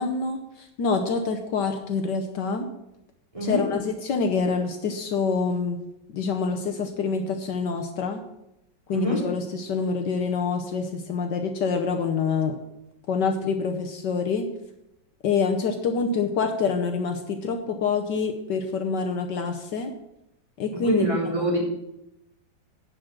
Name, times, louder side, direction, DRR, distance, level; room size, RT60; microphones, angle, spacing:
voice 1, 0.0-2.7 3.4-5.8 6.1-8.2 8.9-12.6 13.1-14.5 15.2-19.9 20.6-21.1, left 5 dB, 70° left, 5 dB, 1.5 m, -26 dB
voice 2, 3.3-3.6 8.9-9.2 20.8-21.6, equal, 15° right, -5 dB, 3.4 m, -25 dB
11.0 x 5.1 x 7.5 m, 0.85 s
omnidirectional pair, 2.0 m